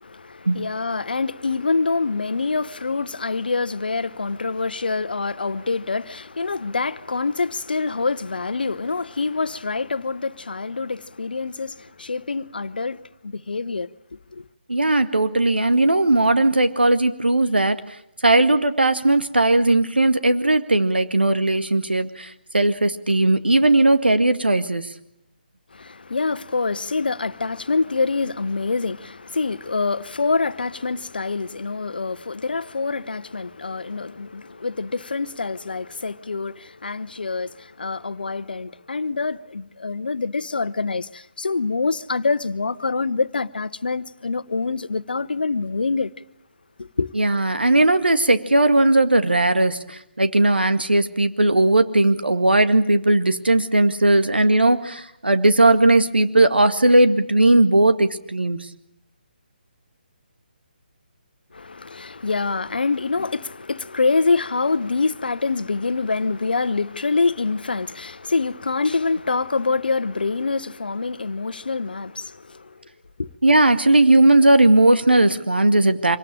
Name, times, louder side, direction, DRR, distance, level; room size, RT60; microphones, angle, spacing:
voice 1, 0.0-13.0 13.2-13.9 14.3-14.4 25.7-46.1 46.8-47.1 61.5-72.7 73.2-73.3, left 4 dB, 65° left, 1.1 m, -25 dB
voice 2, 14.7-17.8 18.2-24.8 47.1-58.6 73.4-76.2, right 2 dB, 80° right, 2.0 m, -17 dB
26.0 x 18.5 x 8.8 m
figure-of-eight pair, 145°, 5 cm